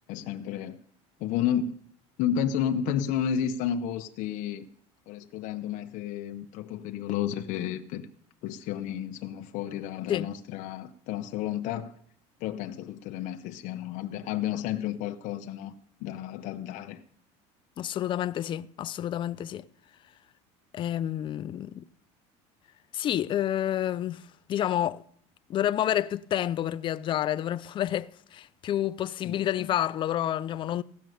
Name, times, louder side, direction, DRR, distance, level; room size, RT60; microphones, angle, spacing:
voice 1, 0.1-0.8 1.2-1.8 2.2-4.7 5.1-8.1 8.4-11.9 12.4-15.7 16.0-17.0 29.2-29.7, left 9 dB, 60° left, 0.9 m, -31 dB
voice 2, 17.8-19.6 20.7-21.8 22.9-24.2 24.5-25.0 25.5-30.8, left 11 dB, 35° left, 0.5 m, -29 dB
16.0 x 6.3 x 9.2 m
cardioid pair, 135°, 15 cm